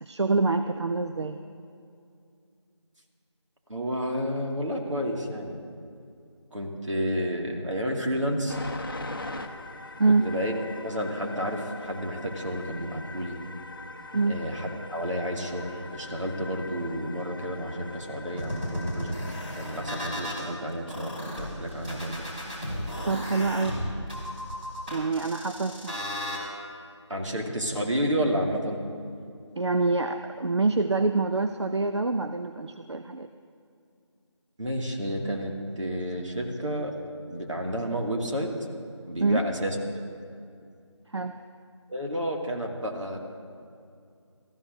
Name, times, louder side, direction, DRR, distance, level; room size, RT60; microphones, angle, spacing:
voice 1, 0.0-1.4 10.0-10.3 14.1-14.4 23.0-23.8 24.9-26.0 29.6-33.3 39.2-39.4 41.1-41.4, right 3 dB, 65° right, 8 dB, 0.5 m, -26 dB
voice 2, 3.7-5.6 6.5-8.6 10.2-10.5 10.8-13.4 14.3-19.1 19.6-22.2 27.1-28.8 34.6-36.9 37.3-38.5 39.1-39.8 41.9-43.2, equal, 80° right, 0 dB, 2.2 m, -30 dB
sound 1, 8.5-20.1, left 2 dB, 45° left, 0.8 m, -42 dB
sound 2, 18.4-20.4 20.9-26.4, equal, 20° right, 2.9 m, -34 dB
19.0 x 14.5 x 2.6 m, 2.4 s
figure-of-eight pair, 175°, 16 cm